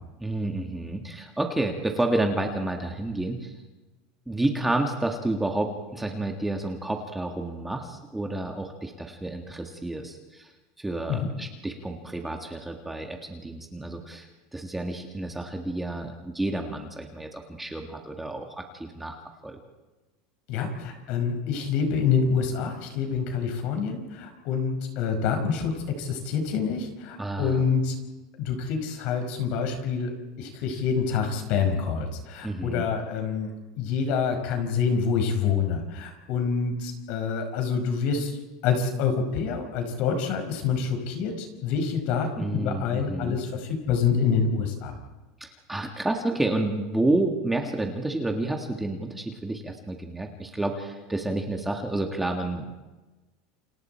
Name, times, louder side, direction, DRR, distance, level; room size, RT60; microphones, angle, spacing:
voice 1, 0.2-3.5 4.3-10.5 10.8-19.2 19.4-19.6 27.2-27.6 32.4-32.9 42.4-43.4 45.4-52.7, right 2 dB, 5° right, 3 dB, 1.7 m, -30 dB
voice 2, 20.5-28.0 28.4-33.5 33.8-38.4 38.6-45.0, left 6 dB, 55° left, 5 dB, 5.3 m, -27 dB
29.0 x 27.5 x 4.5 m, 1.2 s
supercardioid pair, 150°, 2 cm